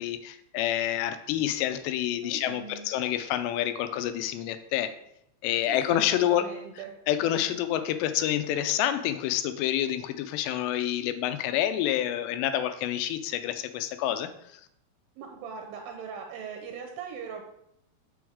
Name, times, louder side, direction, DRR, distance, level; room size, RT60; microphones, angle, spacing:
voice 1, 0.0-4.9 5.4-6.5 7.1-14.3, left 11 dB, 85° left, 10 dB, 2.7 m, -28 dB
voice 2, 2.2-2.9 5.7-6.9 15.2-17.4, right 6 dB, 80° right, 3 dB, 2.1 m, -40 dB
6.9 x 6.2 x 3.6 m, 0.76 s
omnidirectional pair, 4.9 m